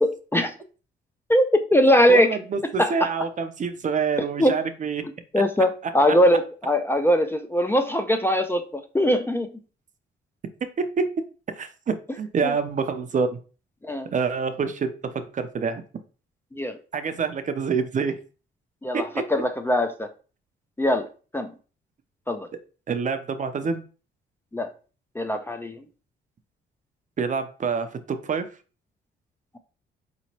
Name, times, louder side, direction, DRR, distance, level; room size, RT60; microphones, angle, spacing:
voice 1, 0.0-0.5 1.3-2.4 2.6-3.1 4.4-4.6 5.3-9.5 12.4-12.5 13.8-14.1 16.6-16.8 18.8-20.1 20.8-21.1 21.3-21.5 22.3-22.5 24.5-24.7 25.2-25.8, equal, 10° left, 0.4 m, -21 dB
voice 2, 2.1-5.0 10.8-11.1 11.6-13.3 14.1-15.8 16.9-18.2 18.9-19.0 22.9-23.8 27.2-28.5, right 5 dB, 40° right, 0.5 m, -27 dB
4.2 x 3.0 x 2.8 m
cardioid pair, 90°, 20 cm